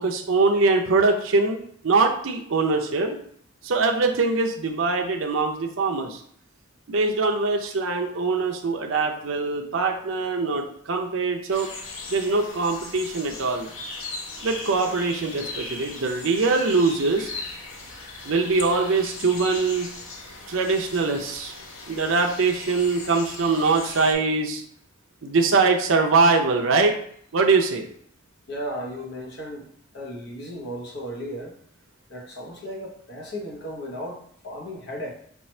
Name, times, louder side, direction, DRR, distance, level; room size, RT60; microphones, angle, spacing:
voice 1, 0.0-3.2 3.6-6.2 6.9-11.7 12.1-13.7 14.4-17.3 18.2-19.9 20.5-21.5 21.9-24.6 25.2-26.9 27.3-27.8, right 3 dB, 80° right, 2 dB, 0.6 m, -22 dB
sound 1, 11.5-24.1, left 3 dB, 90° left, 0.8 m, -38 dB
voice 2, 28.5-29.7 29.9-31.6 32.1-35.1, equal, 55° left, 0 dB, 0.9 m, -35 dB
4.4 x 2.4 x 4.3 m, 0.65 s
head